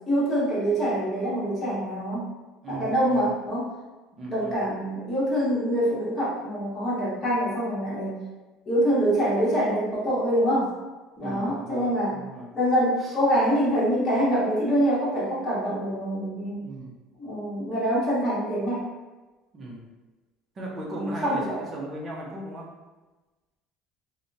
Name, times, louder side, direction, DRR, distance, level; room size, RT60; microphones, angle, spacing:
voice 1, 0.1-2.3 2.7-3.7 4.3-8.1 8.7-10.7 11.2-12.2 12.5-16.6 17.2-18.9 20.9-21.6, equal, 30° left, -8 dB, 0.9 m, -25 dB
voice 2, 2.6-3.3 4.1-4.7 11.2-12.5 13.0-13.2 16.6-16.9 19.5-19.9 20.6-22.7, right 1 dB, 25° right, -3 dB, 0.5 m, -37 dB
2.8 x 2.1 x 2.6 m, 1.2 s
cardioid pair, 150°, 0 cm